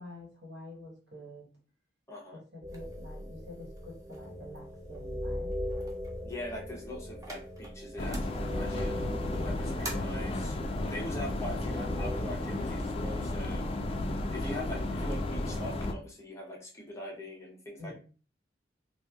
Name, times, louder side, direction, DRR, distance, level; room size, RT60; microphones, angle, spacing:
voice 1, 0.0-1.5 2.3-5.6 9.3-9.8 17.8-17.9, left 1 dB, 65° right, -1 dB, 1.4 m, -47 dB
voice 2, 2.1-2.4 6.2-9.1 9.3-10.6 10.8-13.6 14.3-17.9, left 1 dB, 15° left, -2 dB, 0.8 m, -42 dB
sound 1, 2.6-12.2, equal, 40° right, 1.1 m, -40 dB
sound 2, 2.7-9.9, right 1 dB, 20° right, 0.7 m, -47 dB
sound 3, 8.0-15.9, left 1 dB, 30° left, 0.4 m, -33 dB
2.9 x 2.4 x 3.6 m, 0.37 s
head